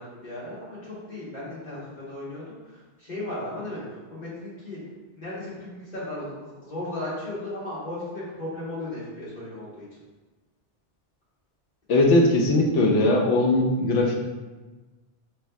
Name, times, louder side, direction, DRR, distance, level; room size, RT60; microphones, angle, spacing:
voice 1, 0.0-2.5 3.0-3.8 4.1-4.8 5.1-9.8, left 1 dB, 40° left, -9 dB, 1.7 m, -35 dB
voice 2, 11.9-14.2, left 2 dB, 90° left, 0 dB, 1.0 m, -20 dB
3.5 x 3.4 x 3.4 m, 1.2 s
omnidirectional pair, 1.2 m